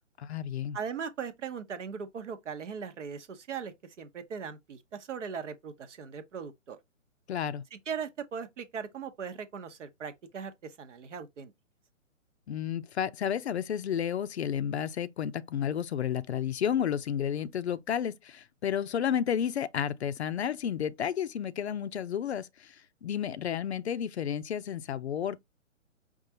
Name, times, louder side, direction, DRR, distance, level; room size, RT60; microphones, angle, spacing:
voice 1, 0.2-0.8 7.3-7.6 12.5-22.8 23.0-25.4, left 9 dB, 55° left, 0.5 m, -31 dB
voice 2, 0.7-6.8 7.7-11.5, right 6 dB, 60° right, 0.9 m, -39 dB
5.3 x 2.4 x 2.8 m
figure-of-eight pair, 140°, 40 cm